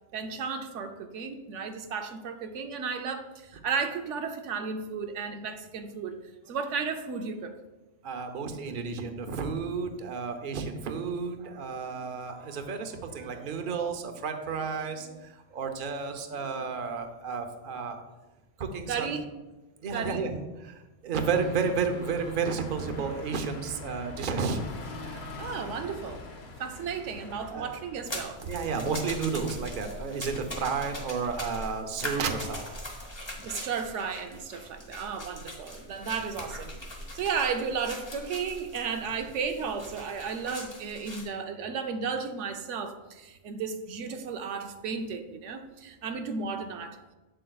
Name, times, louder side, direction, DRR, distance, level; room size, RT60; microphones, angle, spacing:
voice 1, 0.1-6.2 6.5-7.5 12.4-12.6 13.1-13.4 18.9-19.3 19.9-20.2 25.4-26.2 26.6-28.5 33.4-36.7 37.1-47.0, right 5 dB, 85° right, 6 dB, 1.0 m, -34 dB
voice 2, 8.0-18.0 18.6-19.2 19.8-24.6 25.0-25.3 27.5-27.7 28.4-32.6 36.0-36.1, right 5 dB, 50° right, 6 dB, 0.8 m, -32 dB
sound 1, 21.1-28.4, left 2 dB, 60° left, 1.1 m, -43 dB
sound 2, 28.0-41.3, left 1 dB, 25° left, 1.2 m, -41 dB
7.8 x 7.5 x 2.3 m, 1.1 s
omnidirectional pair, 1.2 m